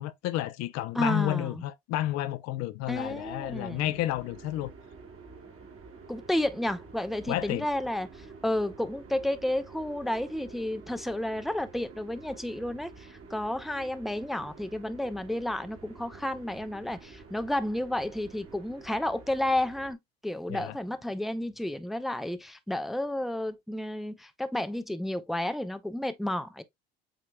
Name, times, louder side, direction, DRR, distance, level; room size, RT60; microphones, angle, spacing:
voice 1, 0.0-4.7 7.3-7.7 20.5-20.7, left 14 dB, 60° left, 0.6 m, -31 dB
voice 2, 0.9-1.6 2.9-3.9 6.1-20.0 20.2-26.6, left 1 dB, ahead, 0.6 m, -31 dB
sound 1, 2.9-19.9, right 4 dB, 50° right, 1.8 m, -49 dB
7.7 x 2.9 x 2.2 m
hypercardioid pair, 65°, 30 cm